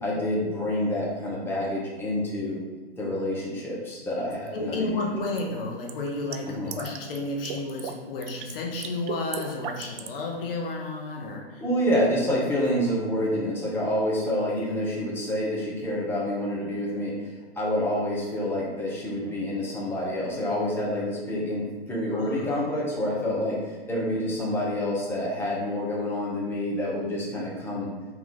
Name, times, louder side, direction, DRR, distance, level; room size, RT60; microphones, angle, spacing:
voice 1, 0.0-2.6 3.0-5.1 6.4-6.8 11.6-17.2 17.6-27.9, left 1 dB, 5° left, -6 dB, 1.0 m, -28 dB
sound 1, 4.3-4.5 5.4-7.2 7.4-8.0 8.2-8.5 8.8-10.2, right 9 dB, 55° right, 0.4 m, -36 dB
voice 2, 4.5-11.6 19.2-19.3 22.1-22.7, left 2 dB, 60° left, 0 dB, 0.9 m, -32 dB
3.9 x 2.9 x 3.8 m, 1.4 s
hypercardioid pair, 125°, 31 cm